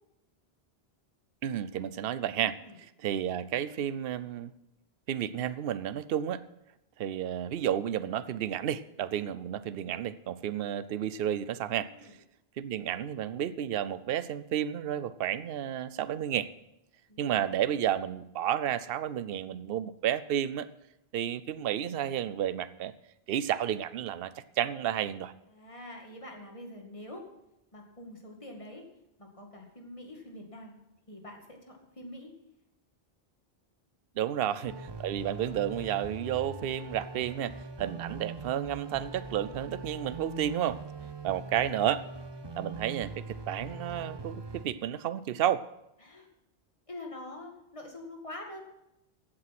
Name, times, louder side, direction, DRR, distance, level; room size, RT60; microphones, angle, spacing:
voice 1, 1.4-2.6 3.0-4.5 5.1-6.4 7.0-11.9 12.6-16.5 17.2-20.7 21.1-22.9 23.3-24.3 24.6-25.3 34.2-40.8 41.2-42.0 42.6-45.6, right 10 dB, 70° right, 15 dB, 0.8 m, -31 dB
voice 2, 17.1-17.6 25.5-27.3 27.7-28.8 29.2-30.8 31.1-32.3 34.2-34.8 41.2-41.4 46.0-46.3 46.9-48.6, left 1 dB, 30° left, 1 dB, 2.2 m, -46 dB
sound 1, 34.7-44.7, right 3 dB, 25° right, 0.8 m, -42 dB
15.0 x 8.8 x 5.9 m, 0.87 s
omnidirectional pair, 1.0 m